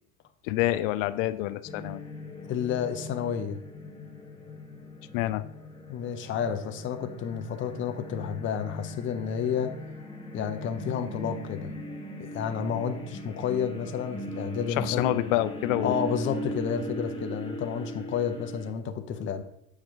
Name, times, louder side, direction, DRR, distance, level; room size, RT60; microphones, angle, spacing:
voice 1, 0.4-2.0 5.1-5.4 14.8-16.0, left 15 dB, 75° left, 15 dB, 0.5 m, -27 dB
sound 1, 1.6-18.7, equal, 15° left, 1.0 m, -39 dB
voice 2, 2.5-3.6 5.9-9.7 10.3-11.7 12.2-15.2 15.8-19.4, left 7 dB, 30° left, 8 dB, 0.6 m, -30 dB
7.5 x 4.9 x 3.5 m, 0.78 s
supercardioid pair, 115°, 37 cm